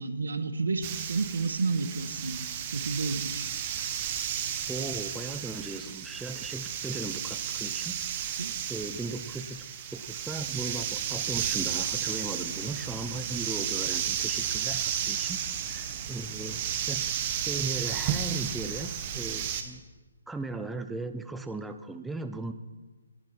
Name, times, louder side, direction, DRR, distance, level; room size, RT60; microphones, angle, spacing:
voice 1, 0.0-2.4 2.7-3.5 8.4-8.5, right 4 dB, 85° right, 10 dB, 1.5 m, -31 dB
sound 1, 0.8-19.6, right 9 dB, 25° right, 1.1 m, -33 dB
voice 2, 4.7-9.7 9.9-17.1 17.5-19.8 20.3-22.5, right 3 dB, 5° right, 8 dB, 0.4 m, -37 dB
18.5 x 10.0 x 4.5 m, 1.3 s
hypercardioid pair, 165°, 0 cm